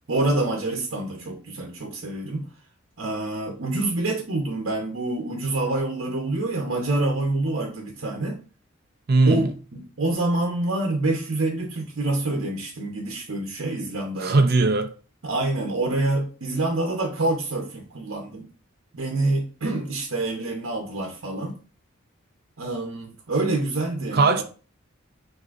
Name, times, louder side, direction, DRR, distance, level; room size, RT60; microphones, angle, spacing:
voice 1, 0.1-2.5 3.0-8.4 9.2-14.4 15.2-18.5 18.9-21.6 22.6-24.4, right 2 dB, 70° right, 0.8 m, -26 dB
voice 2, 9.1-9.5 14.2-14.9 24.1-24.4, right 3 dB, 50° right, 0.4 m, -19 dB
6.0 x 2.7 x 2.5 m
head